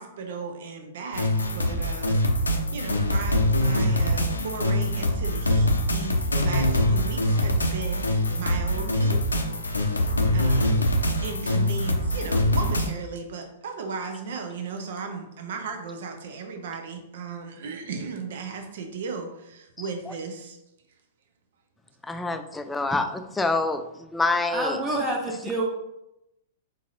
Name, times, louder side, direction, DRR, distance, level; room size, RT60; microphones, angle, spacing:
voice 1, 0.0-2.2 2.7-9.2 10.3-10.8 11.2-20.6, right 5 dB, 60° right, 5 dB, 0.7 m, -36 dB
sound 1, 1.1-12.9, left 1 dB, 85° left, 0.5 m, -24 dB
voice 2, 22.1-24.8, left 3 dB, 10° left, 8 dB, 0.4 m, -26 dB
voice 3, 24.5-25.7, right 2 dB, 25° right, -2 dB, 1.0 m, -27 dB
4.1 x 4.0 x 2.5 m, 0.88 s
figure-of-eight pair, 105°, 0 cm